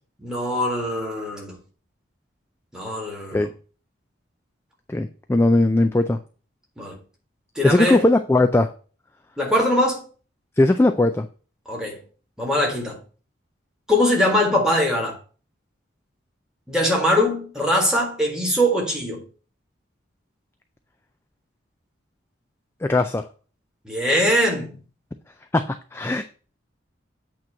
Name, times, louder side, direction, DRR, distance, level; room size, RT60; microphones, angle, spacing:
voice 1, 0.2-1.6 2.7-3.5 6.8-7.0 7.6-8.0 9.4-10.0 11.7-12.0 12.4-13.0 13.9-15.2 16.7-19.2 23.8-24.8, left 1 dB, 5° right, 1.8 m, -22 dB
voice 2, 4.9-6.2 7.6-8.7 10.6-11.3 22.8-23.2 25.5-25.6 25.9-26.2, left 2 dB, 10° left, 0.3 m, -18 dB
8.4 x 3.0 x 6.3 m
head